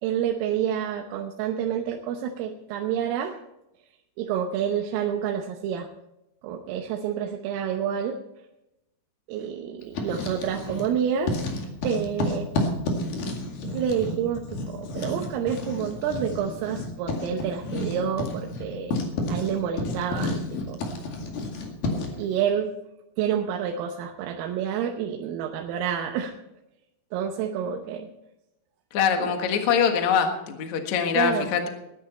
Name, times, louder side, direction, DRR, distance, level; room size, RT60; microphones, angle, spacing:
voice 1, 0.0-3.4 4.2-5.9 6.4-8.2 9.3-11.4 11.8-12.5 13.7-19.0 19.3-20.8 22.2-22.7 23.2-26.3 27.1-28.1 29.2-29.3 31.1-31.5, right 8 dB, 80° right, 2 dB, 3.6 m, -28 dB
Writing, 9.8-10.9 11.2-22.2, left 2 dB, 55° left, 3.4 m, -31 dB
voice 2, 28.9-31.7, left 7 dB, 70° left, 5 dB, 1.7 m, -23 dB
19.0 x 11.0 x 4.3 m, 0.89 s
omnidirectional pair, 5.9 m